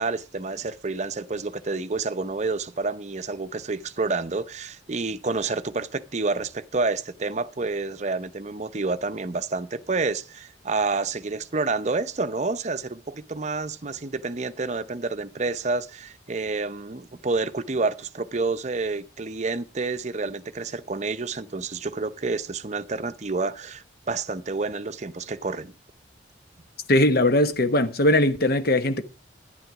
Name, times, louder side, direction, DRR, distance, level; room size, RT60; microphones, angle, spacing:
voice 1, 0.0-25.7, right 3 dB, 40° right, 0.7 m, -29 dB
voice 2, 26.9-29.0, left 1 dB, 55° left, 1.0 m, -20 dB
11.0 x 10.0 x 4.8 m
head